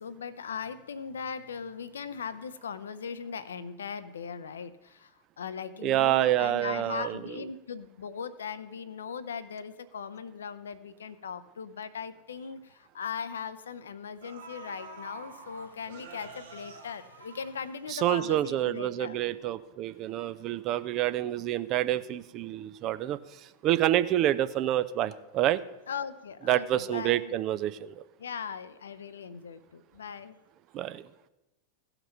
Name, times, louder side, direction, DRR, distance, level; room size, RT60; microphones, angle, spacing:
voice 1, 0.0-19.2 25.9-27.3 28.2-30.4, left 6 dB, 65° left, 13 dB, 0.6 m, -39 dB
voice 2, 5.8-7.2 17.9-25.6 26.5-28.0 30.7-31.1, right 13 dB, 35° right, 14 dB, 0.5 m, -28 dB
sound 1, 12.5-12.7 13.7-13.8 14.2-18.1 18.5-18.6, right 4 dB, 60° right, 1.7 m, -48 dB
16.0 x 5.9 x 5.5 m, 0.99 s
figure-of-eight pair, 90°, 0 cm